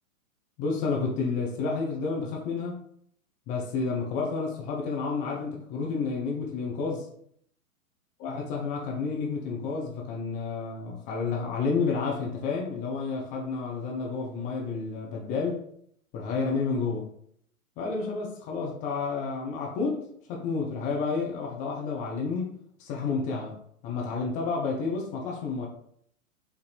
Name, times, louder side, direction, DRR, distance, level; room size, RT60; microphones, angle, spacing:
voice 1, 0.6-2.8 3.5-7.1 8.2-15.6 16.1-17.1 17.8-22.5 22.8-23.6 23.8-25.7, left 4 dB, 20° left, -1 dB, 0.5 m, -30 dB
5.1 x 2.6 x 3.2 m, 0.66 s
figure-of-eight pair, 110°, 44 cm